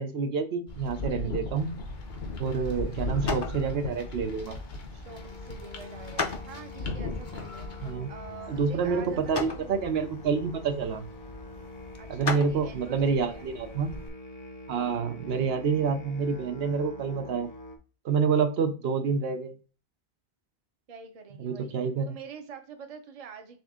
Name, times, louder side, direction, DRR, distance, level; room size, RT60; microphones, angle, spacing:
voice 1, 0.0-1.8 2.4-4.6 7.8-8.1 8.5-11.1 12.1-13.9 14.7-17.5 18.0-19.6 21.4-22.2, right 5 dB, 80° right, 7 dB, 0.9 m, -28 dB
sound 1, 0.7-7.9, left 2 dB, 80° left, 1.2 m, -36 dB
sound 2, 1.5-14.1, left 3 dB, 30° left, 0.5 m, -39 dB
voice 2, 2.5-3.1 4.9-7.7 8.1-9.8 12.0-13.4 14.7-15.3 20.9-21.7 22.1-23.6, right 6 dB, 40° right, 6 dB, 0.7 m, -46 dB
Musical instrument, 5.0-17.8, left 2 dB, 55° left, 0.9 m, -45 dB
4.2 x 3.4 x 3.6 m, 0.36 s
omnidirectional pair, 1.0 m